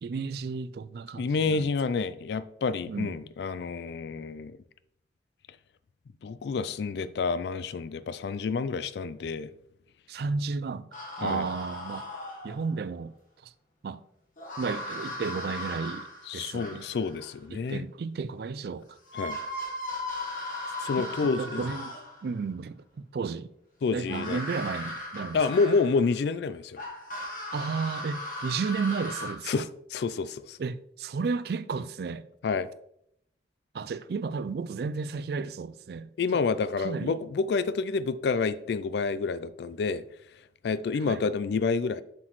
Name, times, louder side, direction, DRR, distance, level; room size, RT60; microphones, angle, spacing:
voice 1, 0.0-1.7 2.9-3.2 10.1-10.9 11.2-12.1 12.4-13.1 13.4-13.5 13.8-14.0 14.6-16.9 17.5-19.0 21.0-22.0 22.2-23.5 23.9-25.4 27.5-29.7 30.6-32.3 33.7-36.1 36.8-37.2 41.0-41.3, right 5 dB, 55° right, 0.3 m, -33 dB
voice 2, 1.2-4.6 6.2-9.5 11.2-11.5 16.3-17.8 19.2-19.4 20.8-21.6 23.8-24.4 25.3-26.8 29.5-30.6 32.4-32.7 36.2-40.0 40.6-42.0, left 4 dB, 65° left, 0.3 m, -28 dB
sound 1, 10.9-12.8 14.4-17.3 18.7-18.8 19.1-22.3 24.0-26.2 26.8-29.3, left 1 dB, 45° left, 1.3 m, -37 dB
7.6 x 6.0 x 3.1 m
head